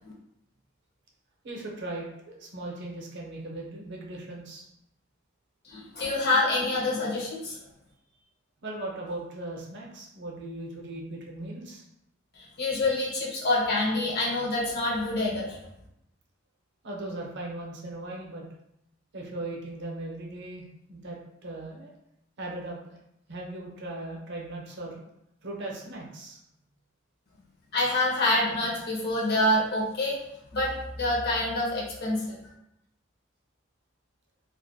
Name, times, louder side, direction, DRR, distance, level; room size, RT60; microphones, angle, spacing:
voice 1, 1.4-4.7 8.6-11.8 16.8-18.4 19.1-21.9 22.4-22.8 23.3-25.0 25.4-26.4, right 2 dB, 60° right, -2 dB, 0.6 m, -38 dB
voice 2, 5.6-7.6 12.3-15.6 27.7-30.2 30.5-32.4, left 2 dB, 55° left, -3 dB, 0.7 m, -26 dB
2.3 x 2.2 x 2.6 m, 0.80 s
head